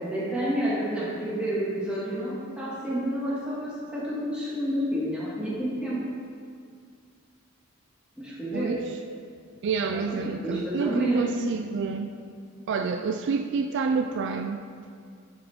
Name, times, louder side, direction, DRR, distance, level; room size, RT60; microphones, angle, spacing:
voice 1, 0.0-6.0 8.2-8.7 9.9-11.4, right 1 dB, 5° right, -8 dB, 2.0 m, -29 dB
voice 2, 9.6-12.1 12.7-14.6, right 5 dB, 60° right, 6 dB, 0.3 m, -28 dB
11.5 x 4.8 x 3.6 m, 2.2 s
head